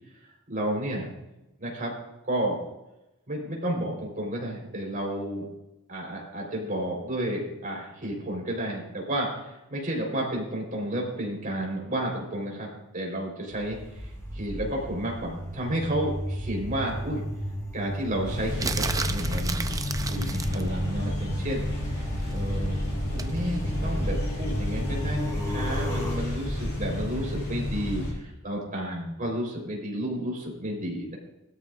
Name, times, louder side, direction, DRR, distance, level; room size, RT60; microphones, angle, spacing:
voice 1, 0.5-1.1 1.6-1.9 2.2-2.6 3.3-5.5 5.9-17.2 17.7-21.6 22.3-22.9 23.1-31.2, right 1 dB, 40° right, -1 dB, 4.2 m, -31 dB
sound 1, 13.5-26.2, equal, 15° left, 3.3 m, -34 dB
sound 2, 18.2-28.1, left 1 dB, 50° left, 5.5 m, -31 dB
sound 3, 18.6-20.7 23.2-23.4, right 4 dB, 15° right, 0.5 m, -32 dB
19.0 x 12.5 x 2.5 m, 0.95 s
head